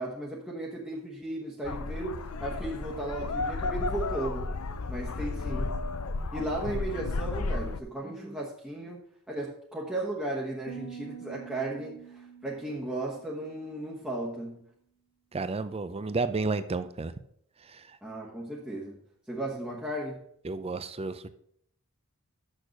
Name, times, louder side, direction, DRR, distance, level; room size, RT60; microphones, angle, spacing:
voice 1, 0.0-4.5 4.9-5.7 6.3-9.0 9.3-14.6 18.0-19.0 19.3-20.2, right 1 dB, 5° right, -5 dB, 1.1 m, -35 dB
sound 1, 1.6-7.8, left 3 dB, 70° left, 0.6 m, -33 dB
sound 2, 10.7-14.1, right 6 dB, 40° left, 1.5 m, -46 dB
voice 2, 15.3-17.1 17.7-17.8 20.4-21.3, right 3 dB, 25° right, 12 dB, 0.5 m, -31 dB
6.5 x 6.4 x 6.4 m, 0.68 s
head